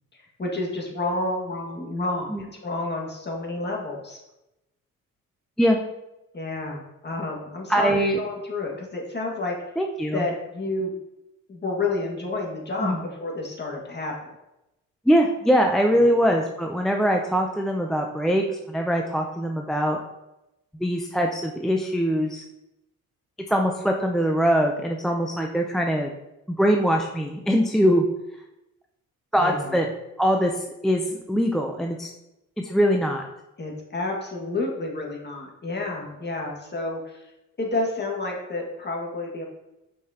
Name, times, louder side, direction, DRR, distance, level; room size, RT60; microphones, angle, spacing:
voice 1, 0.1-4.2 6.3-9.6 10.1-10.9 11.5-14.3 15.9-16.2 29.3-29.8 33.6-37.3 37.6-39.4, left 2 dB, 35° left, -1 dB, 1.8 m, -30 dB
voice 2, 7.7-8.2 9.8-10.3 12.8-13.0 15.1-20.0 20.8-22.4 23.5-26.1 26.6-28.0 29.3-29.9 30.2-32.1 32.6-33.2, equal, ahead, 1 dB, 0.5 m, -22 dB
5.9 x 5.9 x 2.9 m, 0.91 s
cardioid pair, 90°, 32 cm